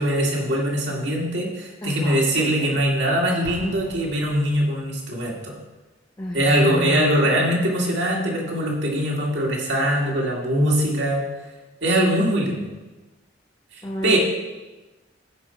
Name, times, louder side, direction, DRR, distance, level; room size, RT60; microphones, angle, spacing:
voice 1, 0.0-5.5 6.3-11.2 11.8-12.7 13.7-14.2, equal, 65° right, -1 dB, 2.1 m, -22 dB
voice 2, 1.8-2.8 6.2-7.3 13.8-14.2, left 1 dB, 20° left, -1 dB, 0.8 m, -31 dB
Explosion, 3.4-5.0, right 1 dB, 40° right, 1.1 m, -40 dB
15.0 x 5.2 x 4.3 m, 1.2 s
head